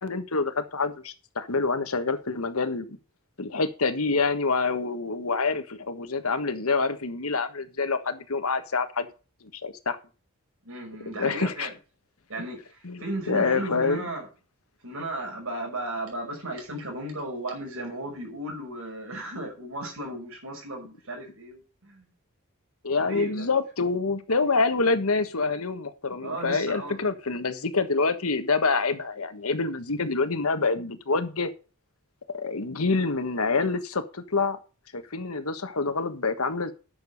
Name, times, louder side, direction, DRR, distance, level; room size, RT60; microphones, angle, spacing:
voice 1, 0.0-3.0 3.4-9.1 9.4-10.0 11.1-11.7 12.4-12.5 12.8-14.1 22.8-31.5 32.3-34.6 34.9-36.7, left 4 dB, 90° left, 1.4 m, -27 dB
voice 2, 10.6-11.7 12.3-14.3 14.8-22.1 23.0-23.5 26.2-27.1, right 1 dB, 75° right, 5.7 m, -35 dB
10.5 x 6.8 x 5.4 m
head